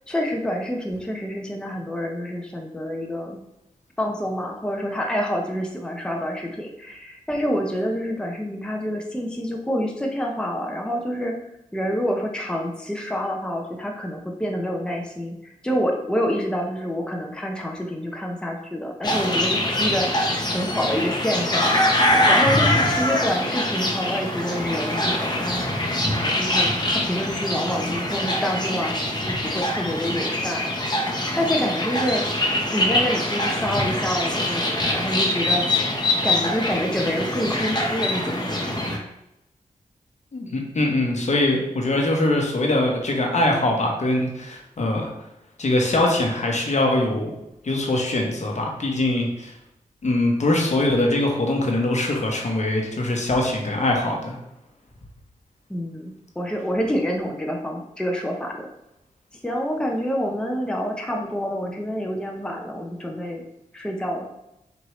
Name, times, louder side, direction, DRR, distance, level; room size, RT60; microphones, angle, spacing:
voice 1, 0.1-3.4 4.0-11.3 11.7-21.7 22.3-25.6 26.1-31.0 31.4-32.2 32.7-35.7 36.2-39.1 55.7-58.7 59.4-63.5 63.7-64.3, equal, 5° left, 1 dB, 0.7 m, -27 dB
sound 1, 19.0-39.0, left 1 dB, 30° left, 0.9 m, -23 dB
voice 2, 40.3-45.1 45.6-47.3 47.6-49.5 50.0-54.4, left 1 dB, 55° left, 1 dB, 1.0 m, -22 dB
4.6 x 2.6 x 3.1 m, 0.87 s
cardioid pair, 45°, 14 cm